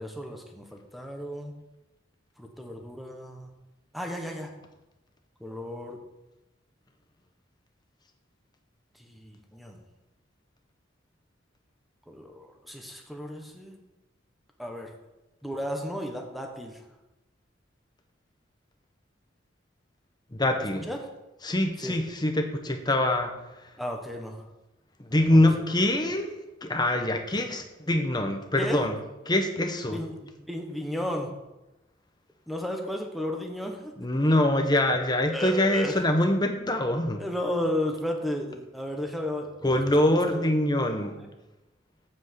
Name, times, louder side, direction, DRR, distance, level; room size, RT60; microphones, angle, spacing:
voice 1, 0.0-1.5 2.4-3.5 3.9-4.5 5.4-6.0 9.0-9.8 12.1-13.8 14.6-14.9 15.4-16.8 20.9-21.0 21.8-22.0 23.8-24.4 25.1-25.7 28.6-28.8 29.9-31.3 32.5-33.9 35.3-36.0 37.2-40.5 41.0-41.3, left 1 dB, ahead, 2 dB, 1.3 m, -34 dB
voice 2, 20.3-20.9 21.4-23.3 25.0-29.0 29.3-30.0 34.0-37.2 39.6-41.2, left 1 dB, 20° left, 5 dB, 1.1 m, -24 dB
7.5 x 6.7 x 7.5 m, 1.0 s
head